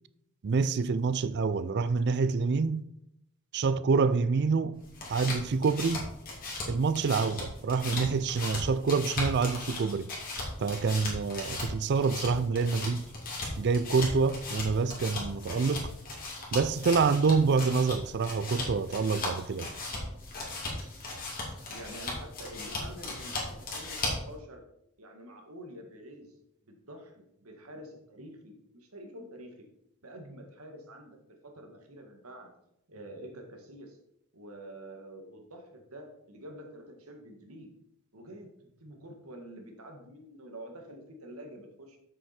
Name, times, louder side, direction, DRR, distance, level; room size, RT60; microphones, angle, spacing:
voice 1, 0.4-2.8 3.5-4.8 5.1-6.0 6.7-10.1 10.6-13.1 13.6-15.9 16.5-19.7, right 4 dB, 50° right, 0.4 m, -27 dB
sound 1, 4.7-24.3, left 2 dB, 40° left, 2.4 m, -37 dB
voice 2, 21.7-24.6 25.0-26.3 26.7-29.6 30.0-31.2 31.4-32.5 32.9-34.0 34.3-37.7 38.1-42.0, right 1 dB, 80° right, 1.7 m, -47 dB
8.1 x 6.7 x 4.3 m
head